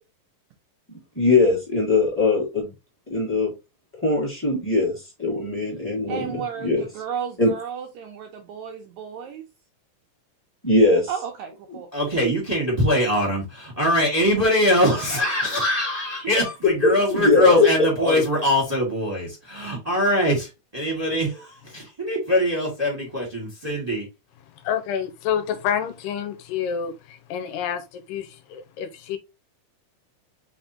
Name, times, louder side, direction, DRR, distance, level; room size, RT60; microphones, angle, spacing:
voice 1, 1.1-2.7 3.1-3.5 3.9-4.9 5.2-6.8 7.4-7.5 10.6-11.1 11.7-11.8 17.1-18.2, left 3 dB, 5° left, 1.0 m, -20 dB
voice 2, 6.1-9.4 11.1-11.9, right 7 dB, 75° right, 1.7 m, -33 dB
voice 3, 11.9-24.0, equal, 20° right, 1.0 m, -23 dB
voice 4, 24.7-29.2, left 8 dB, 85° left, 2.4 m, -28 dB
5.2 x 3.5 x 2.8 m
omnidirectional pair, 3.9 m